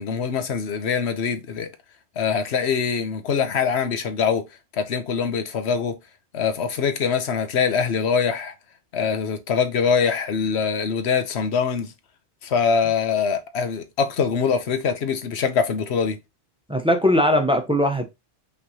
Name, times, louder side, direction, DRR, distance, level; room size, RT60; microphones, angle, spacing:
voice 1, 0.0-1.7 2.2-4.4 4.7-5.9 6.3-8.5 8.9-11.9 12.4-16.2, left 6 dB, 75° left, 1.1 m, -23 dB
voice 2, 16.7-18.1, equal, 5° right, 0.7 m, -20 dB
5.5 x 3.3 x 2.8 m
omnidirectional pair, 1.1 m